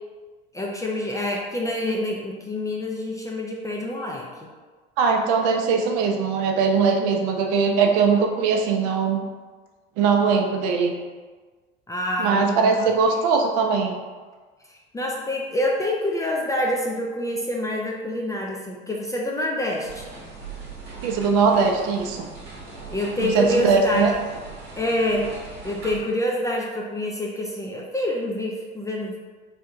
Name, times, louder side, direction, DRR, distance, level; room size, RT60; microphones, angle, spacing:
voice 1, 0.5-4.5 11.9-12.9 14.7-20.1 22.9-24.1 24.8-29.2, left 1 dB, 10° left, -2 dB, 0.3 m, -27 dB
voice 2, 5.0-9.2 10.0-10.9 12.2-14.0 21.0-22.3 23.2-24.1, right 5 dB, 55° right, 3 dB, 0.5 m, -20 dB
sound 1, 19.8-26.0, right 3 dB, 90° right, 0.9 m, -39 dB
3.3 x 2.6 x 2.4 m, 1.4 s
hypercardioid pair, 70°, 30 cm